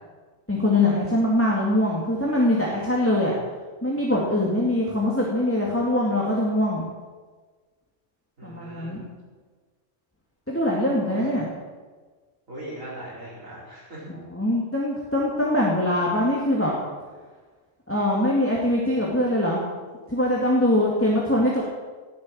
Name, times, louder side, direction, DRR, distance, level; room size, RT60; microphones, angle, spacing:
voice 1, 0.5-3.4 3.8-6.9 8.4-9.0 10.5-11.5 14.1-16.7 17.9-19.7 20.1-21.6, left 1 dB, 10° left, -4 dB, 2.3 m, -23 dB
voice 2, 8.4-8.9 11.3-11.4 12.5-14.0, right 1 dB, 85° right, -6 dB, 5.3 m, -39 dB
17.5 x 7.4 x 8.9 m, 1.4 s
omnidirectional pair, 1.3 m